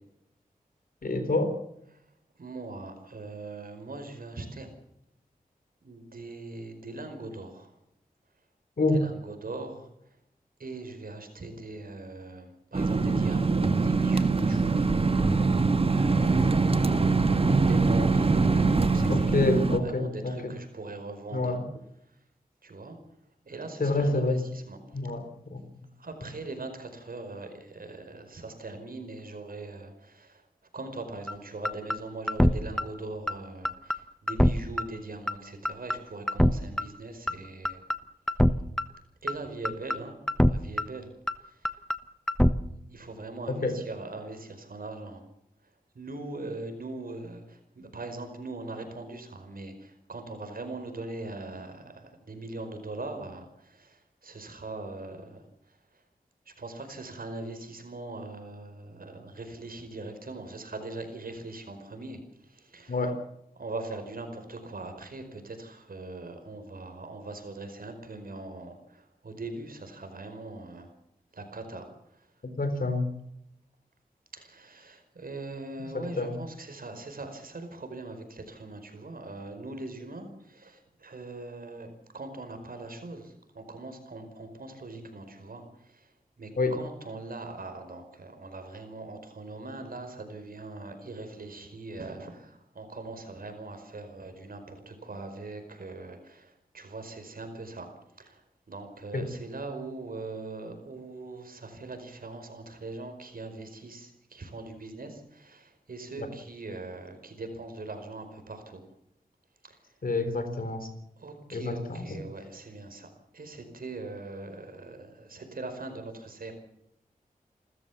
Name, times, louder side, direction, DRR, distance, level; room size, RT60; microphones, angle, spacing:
voice 1, 1.0-1.5 8.8-9.0 19.1-20.5 21.3-21.7 23.8-24.4 24.9-25.6 43.6-43.8 62.9-63.2 72.6-73.1 75.9-76.4 86.6-86.8 99.1-99.3 106.2-106.3 110.0-110.9 111.5-112.1, left 2 dB, 70° left, 9 dB, 3.8 m, -27 dB
voice 2, 2.4-4.7 5.8-7.7 8.9-9.8 10.6-15.5 15.9-21.5 22.6-23.0 23.5-24.8 26.0-30.4 30.7-37.8 39.2-40.2 40.5-41.1 42.9-45.2 45.9-54.0 54.2-55.4 56.5-62.2 62.5-63.0 63.6-70.9 71.3-71.9 74.3-85.6 85.9-86.0 86.4-97.9 98.2-98.4 98.7-108.8 109.6-109.8 111.2-113.1 113.3-116.5, right 2 dB, 75° right, 6 dB, 5.0 m, -41 dB
sound 1, 12.7-19.8, right 4 dB, 40° right, 1.7 m, -23 dB
sound 2, 31.3-31.4 31.7-32.0 32.3-32.5 32.8-32.9 33.3-33.4 33.7-34.0 34.3-34.5 34.8-34.9 35.3-35.4 35.7-36.0 36.3-36.5 36.8-36.9 37.3-37.4 37.7-38.0 38.3-38.5 38.8-38.9 39.3-39.4 39.7-40.0 40.3-40.5 40.8-40.9 41.3-41.4 41.7-42.0 42.3-42.5, equal, 5° left, 1.2 m, -22 dB
28.5 x 14.0 x 7.3 m, 0.80 s
wide cardioid pair, 65°, 15 cm